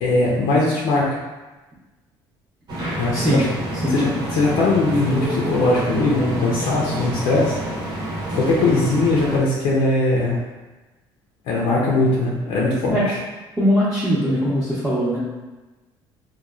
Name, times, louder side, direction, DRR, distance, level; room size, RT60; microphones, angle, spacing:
voice 1, 0.0-1.2 3.0-3.5 3.9-7.6 8.3-10.4 11.5-13.2, left 2 dB, 75° left, -4 dB, 0.5 m, -20 dB
sound 1, 2.7-9.4, right 1 dB, 45° right, 0.8 m, -28 dB
voice 2, 3.1-3.4 3.8-4.1 12.9-13.0 13.6-15.2, equal, 10° right, -9 dB, 0.6 m, -20 dB
2.9 x 2.2 x 2.3 m, 1.2 s
cardioid pair, 130°, 10 cm